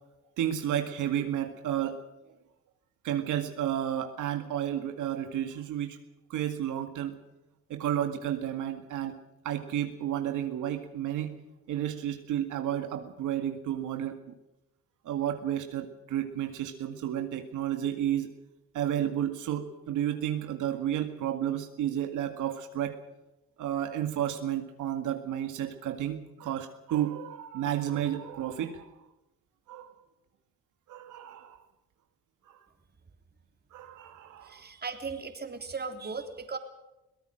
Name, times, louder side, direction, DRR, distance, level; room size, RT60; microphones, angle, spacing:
voice 1, 0.4-2.0 3.0-6.0 6.3-7.1 7.7-9.2 9.4-11.3 11.7-14.2 15.1-18.3 18.7-23.0 23.6-28.9 29.7-29.9 30.9-31.6 32.5-32.6 33.7-34.6, right 11 dB, 85° right, 6 dB, 2.1 m, -31 dB
voice 2, 34.4-36.6, right 4 dB, 35° right, 6 dB, 3.3 m, -37 dB
23.0 x 17.5 x 6.5 m, 0.96 s
cardioid pair, 90°, 30 cm